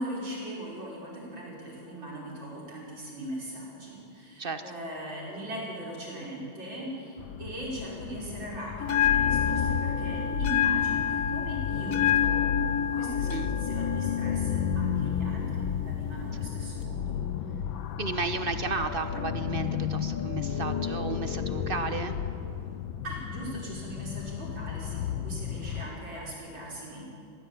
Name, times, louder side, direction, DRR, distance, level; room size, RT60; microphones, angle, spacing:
voice 1, 0.0-17.2 17.5-17.6 23.0-27.0, right 1 dB, 75° right, -4 dB, 6.4 m, -39 dB
voice 2, 4.4-4.7 13.3-13.5 18.0-22.2, right 4 dB, 40° right, 9 dB, 0.8 m, -33 dB
sound 1, 7.2-25.8, left 8 dB, 85° left, 1.6 m, -32 dB
Bell, 8.8-16.8, left 9 dB, 50° left, 1.3 m, -29 dB
sound 2, 14.0-22.8, left 1 dB, 30° left, 3.6 m, -49 dB
21.5 x 16.0 x 8.8 m, 2.4 s
omnidirectional pair, 2.1 m